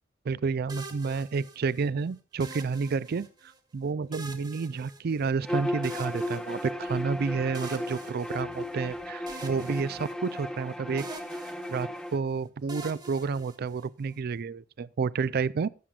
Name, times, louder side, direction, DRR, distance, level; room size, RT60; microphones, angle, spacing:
voice 1, 0.3-3.3 3.7-11.1 11.7-15.7, right 5 dB, 55° right, 0.4 m, -30 dB
sound 1, 0.7-1.9 2.4-3.5 4.1-5.5 5.8-7.0 7.5-8.9 9.3-10.7 11.0-12.2 12.7-14.1, right 2 dB, 20° right, 1.4 m, -45 dB
Bowed string instrument, 5.4-12.2, left 1 dB, 5° left, 1.0 m, -35 dB
22.0 x 7.5 x 2.4 m
head